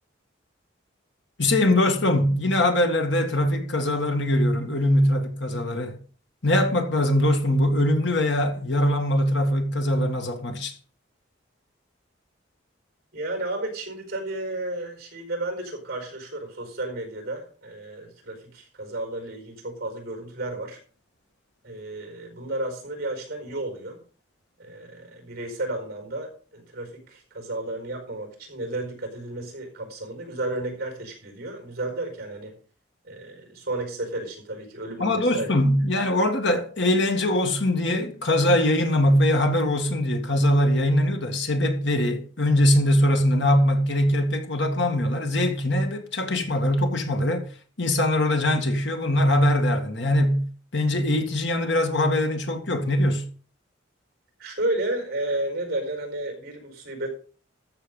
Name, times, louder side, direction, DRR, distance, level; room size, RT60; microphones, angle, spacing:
voice 1, 1.4-6.0 6.4-10.7 35.0-47.5 47.8-50.5 50.7-53.3, left 1 dB, 60° left, 1.9 m, -22 dB
voice 2, 13.1-20.8 21.6-24.0 24.6-32.6 33.0-35.5 54.4-57.1, right 2 dB, 50° right, 4.8 m, -32 dB
13.5 x 6.9 x 5.4 m
head